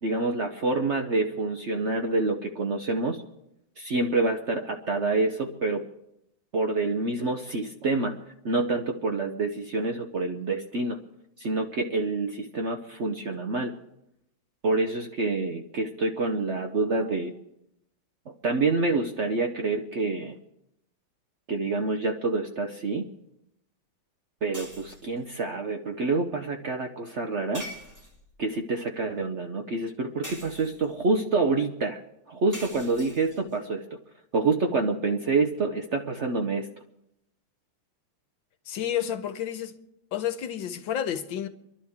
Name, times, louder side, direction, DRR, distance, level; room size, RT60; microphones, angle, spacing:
voice 1, 0.0-3.2 3.8-5.8 6.5-8.2 8.4-11.0 11.4-13.7 14.6-17.3 18.4-20.4 21.5-23.0 24.4-27.7 28.4-32.0 32.3-33.8 34.3-36.7, right 3 dB, 55° right, 0.8 m, -27 dB
sound 1, 24.5-25.2 27.5-28.4 30.2-31.0 32.5-33.6, equal, 10° right, 1.7 m, -43 dB
voice 2, 38.7-39.8 40.1-41.5, left 10 dB, 85° left, 1.7 m, -30 dB
27.0 x 11.5 x 3.5 m
omnidirectional pair, 2.1 m